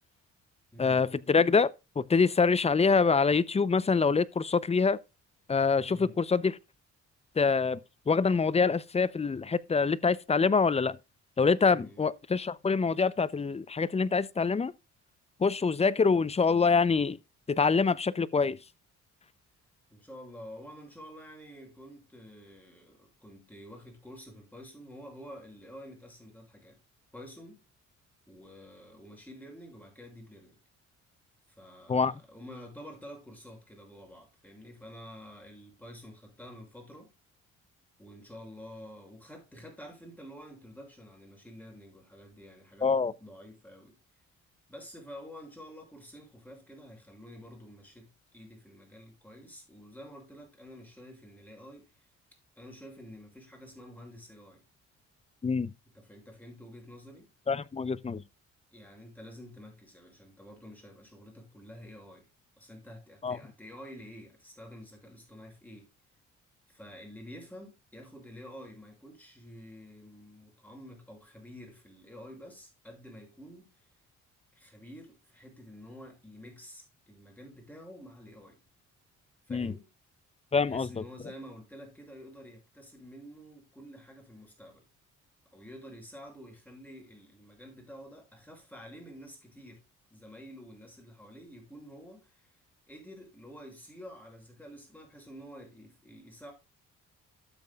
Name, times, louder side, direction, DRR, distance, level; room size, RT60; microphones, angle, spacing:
voice 1, 0.8-5.0 5.5-6.6 7.4-7.8 8.1-11.0 11.4-14.7 15.4-17.2 17.5-18.6 31.9-32.1 42.8-43.1 55.4-55.7 57.5-58.2 63.2-63.4 79.5-79.7 80.5-80.9, left 5 dB, 20° left, 0.6 m, -25 dB
voice 2, 11.7-12.0 19.9-26.8 27.1-27.6 28.3-30.6 31.5-37.1 38.0-42.9 43.2-44.0 44.7-52.1 52.6-54.6 55.9-57.3 58.7-62.3 62.6-65.9 66.7-73.9 74.5-78.6 79.5-79.9 80.6-84.8 85.5-89.8 90.1-92.5 92.9-96.5, equal, 5° left, 6.4 m, -49 dB
13.0 x 7.5 x 2.3 m
cardioid pair, 90°, 30 cm